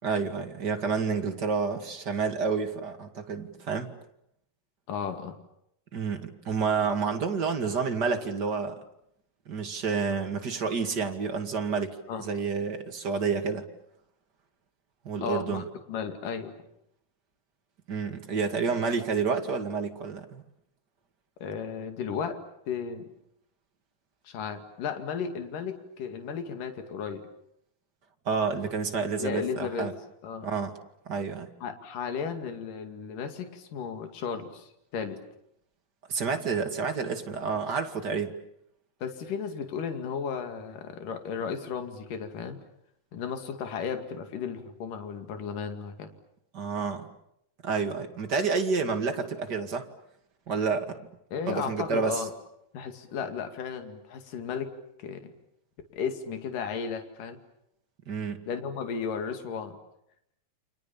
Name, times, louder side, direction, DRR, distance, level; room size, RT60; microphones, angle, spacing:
voice 1, 0.0-3.9 5.9-8.8 9.5-13.7 15.0-15.6 17.9-20.4 28.3-29.9 30.4-30.7 31.1-31.5 36.1-38.3 46.5-47.1 47.6-49.9 50.5-51.1 51.5-52.2 58.1-58.4, right 5 dB, 35° right, 5 dB, 2.2 m, -29 dB
voice 2, 4.9-5.4 12.1-12.3 15.2-15.6 15.9-16.5 21.4-22.4 22.7-23.1 24.3-27.2 29.2-29.9 30.2-30.5 31.6-35.2 39.0-42.6 43.1-46.1 51.3-52.3 52.7-54.7 55.0-55.3 55.9-57.4 58.5-59.8, left 6 dB, 65° left, 6 dB, 3.9 m, -34 dB
29.5 x 27.0 x 7.1 m, 0.76 s
omnidirectional pair, 4.2 m